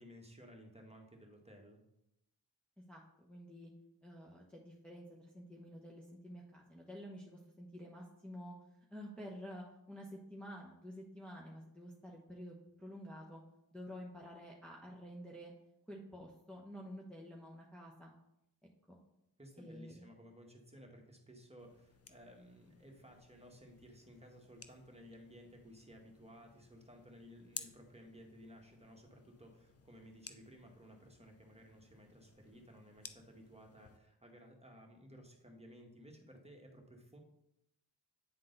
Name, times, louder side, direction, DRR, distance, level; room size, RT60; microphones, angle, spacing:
voice 1, 0.0-1.8 19.4-37.2, equal, 15° right, 1 dB, 1.5 m, -57 dB
voice 2, 2.9-3.7 4.0-8.5 8.9-13.4 13.7-15.5 15.9-18.1 18.9-19.0 19.6-20.1, equal, ahead, -3 dB, 1.1 m, -50 dB
sound 1, 21.6-34.0, left 5 dB, 35° left, 0.6 m, -56 dB
9.1 x 3.7 x 3.9 m, 0.84 s
cardioid pair, 40°, 41 cm